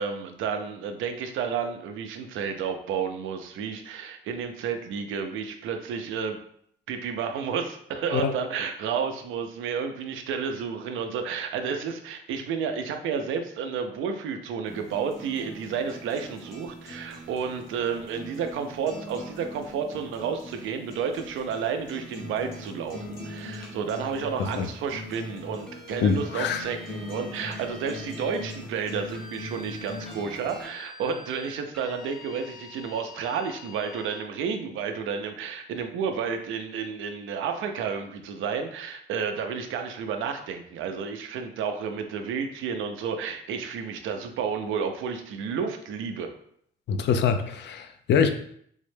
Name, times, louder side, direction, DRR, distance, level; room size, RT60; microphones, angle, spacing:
voice 1, 0.0-6.4 6.9-46.3, right 6 dB, 85° right, 6 dB, 0.5 m, -31 dB
sound 1, 14.7-30.7, left 1 dB, 85° left, 0.9 m, -41 dB
sound 2, 25.7-28.5 29.1-34.3, left 2 dB, 5° left, 0.6 m, -47 dB
voice 2, 26.0-26.6 46.9-48.3, left 6 dB, 60° left, 8 dB, 0.4 m, -24 dB
3.5 x 2.1 x 3.2 m, 0.67 s
cardioid pair, 90°, 20 cm